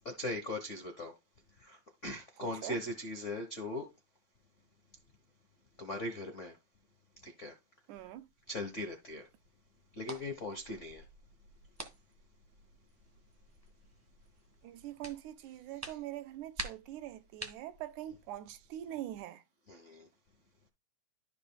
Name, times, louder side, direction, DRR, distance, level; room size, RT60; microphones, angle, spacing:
voice 1, 0.0-1.1 1.6-3.9 5.8-6.6 7.2-7.5 8.5-9.3 10.0-11.0 15.8-16.0 19.7-20.1, left 1 dB, 85° left, 0.6 m, -40 dB
voice 2, 2.4-2.8 7.9-8.3 14.6-19.4, right 13 dB, 90° right, 2.3 m, -43 dB
sound 1, 7.9-19.2, right 1 dB, 10° right, 0.9 m, -50 dB
14.0 x 5.2 x 2.3 m
omnidirectional pair, 3.4 m